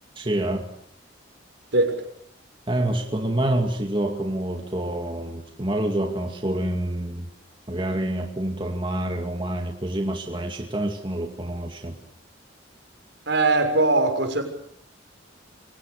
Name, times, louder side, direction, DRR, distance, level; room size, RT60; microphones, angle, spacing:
voice 1, 0.2-0.7 2.7-7.3 7.7-11.9, right 1 dB, 25° right, 3 dB, 2.4 m, -27 dB
voice 2, 1.7-2.0 13.3-14.4, right 2 dB, 65° right, 6 dB, 6.2 m, -20 dB
29.5 x 24.5 x 6.7 m, 0.65 s
head